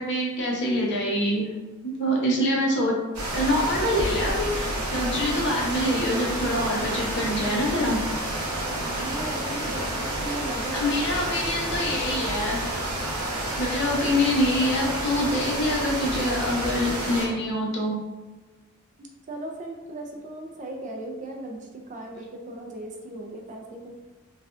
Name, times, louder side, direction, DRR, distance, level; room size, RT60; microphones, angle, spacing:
voice 1, 0.0-1.5 1.8-2.9 3.3-8.0 10.7-12.6 13.6-18.0, left 1 dB, 55° left, -2 dB, 0.7 m, -25 dB
sound 1, 3.1-17.3, right 1 dB, 80° right, 0.9 m, -29 dB
voice 2, 8.7-11.2 19.0-23.9, right 1 dB, 35° right, 1 dB, 0.4 m, -37 dB
3.2 x 2.3 x 2.4 m, 1.2 s
head